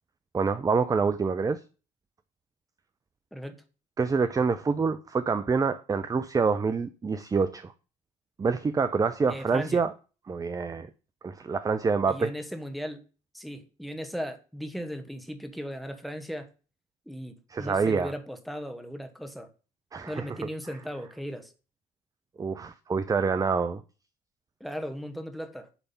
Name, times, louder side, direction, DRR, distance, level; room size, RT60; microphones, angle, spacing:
voice 1, 0.3-1.6 4.0-7.7 8.4-9.9 10.3-10.9 11.2-12.3 17.5-18.1 19.9-20.2 22.4-23.8, right 5 dB, 20° right, 0.5 m, -26 dB
voice 2, 3.3-3.6 9.3-9.8 12.1-13.0 13.3-16.5 17.1-19.5 20.1-21.5 24.6-25.7, equal, ahead, 1.4 m, -37 dB
10.0 x 3.4 x 5.5 m
hypercardioid pair, 65°, 18 cm